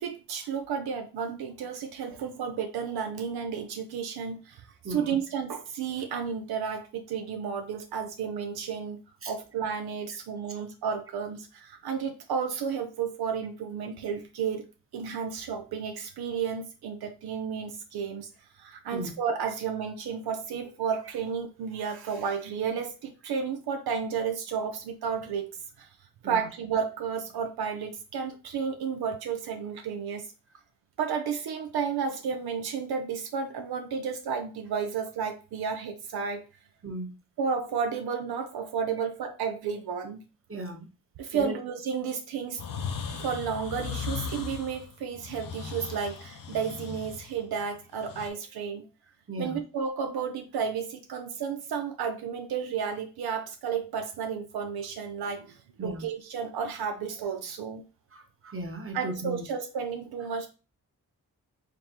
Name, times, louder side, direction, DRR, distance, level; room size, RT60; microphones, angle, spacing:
voice 1, 0.0-9.0 9.3-14.7 14.9-18.3 18.6-25.5 25.8-25.9 26.2-30.2 31.0-36.4 37.4-40.2 41.2-42.6 43.2-48.8 49.4-57.8 58.9-60.5, right 6 dB, 85° right, 5 dB, 0.5 m, -32 dB
voice 2, 4.8-5.2 9.2-9.3 18.9-19.1 26.2-26.5 36.8-37.1 40.5-40.9 41.3-41.5 49.3-49.6 55.8-56.1 58.1-59.4, right 1 dB, 35° right, 4 dB, 1.0 m, -36 dB
sound 1, 42.6-48.3, left 6 dB, 60° left, 0.8 m, -37 dB
4.0 x 3.3 x 2.8 m, 0.33 s
cardioid pair, 50°, 36 cm